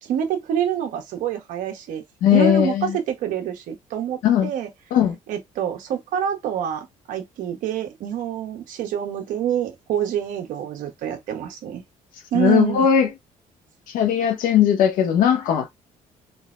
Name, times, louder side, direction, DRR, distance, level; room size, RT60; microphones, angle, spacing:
voice 1, 0.0-2.0 2.3-4.7 5.3-11.8 12.3-12.8, right 9 dB, 80° right, 1.0 m, -26 dB
voice 2, 2.2-3.0 4.2-4.5 4.9-5.2 12.3-13.1 13.9-15.7, left 9 dB, 85° left, 1.0 m, -18 dB
3.9 x 2.1 x 2.5 m
cardioid pair, 175°, 14 cm